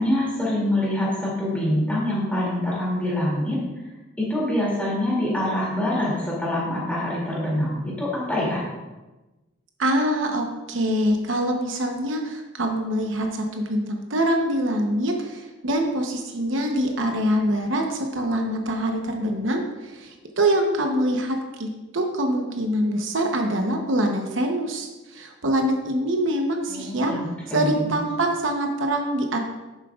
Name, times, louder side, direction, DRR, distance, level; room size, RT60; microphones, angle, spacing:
voice 1, 0.0-3.6 4.2-8.6 26.7-27.9, left 1 dB, 5° left, -6 dB, 2.5 m, -25 dB
voice 2, 9.8-21.7 21.9-27.1 27.5-29.4, right 1 dB, 70° right, 3 dB, 0.9 m, -24 dB
11.0 x 7.4 x 2.4 m, 1.1 s
head